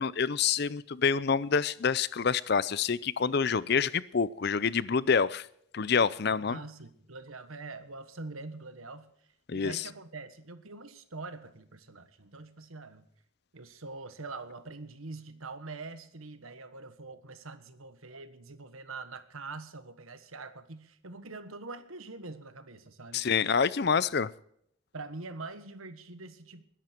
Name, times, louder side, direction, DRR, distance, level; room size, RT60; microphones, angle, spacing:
voice 1, 0.0-5.5 5.7-6.6 9.5-9.9 23.1-24.3, left 6 dB, 50° left, 0.5 m, -27 dB
voice 2, 6.3-9.1 9.5-13.1 13.5-23.3 23.9-24.0 24.9-26.6, right 3 dB, 85° right, 1.5 m, -44 dB
20.5 x 11.0 x 4.5 m
head